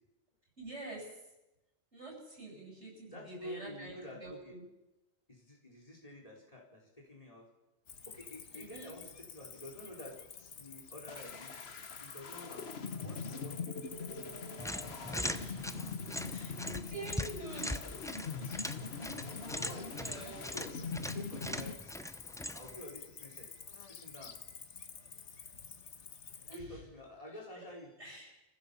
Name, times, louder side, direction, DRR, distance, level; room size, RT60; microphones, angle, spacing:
voice 1, 0.6-1.1 1.9-4.6 8.5-8.9 15.1-15.7 16.3-18.0 18.7-18.9 19.4-20.6 26.4-26.8 27.5-27.6 28.0-28.3, right 2 dB, 80° right, -1 dB, 8.1 m, -47 dB
voice 2, 3.1-4.6 5.3-7.5 8.1-10.2 10.6-11.5 12.0-13.8 19.0-20.1 20.5-25.5 26.5-27.9, left 1 dB, 30° left, 0 dB, 4.8 m, -50 dB
Cricket, 7.9-26.6, left 6 dB, 85° left, 1.5 m, -50 dB
sound 1, 11.1-21.7, left 4 dB, 65° left, 1.5 m, -43 dB
sound 2, 14.6-22.8, left 1 dB, 5° left, 0.6 m, -41 dB
26.5 x 15.0 x 7.2 m, 0.98 s
omnidirectional pair, 1.2 m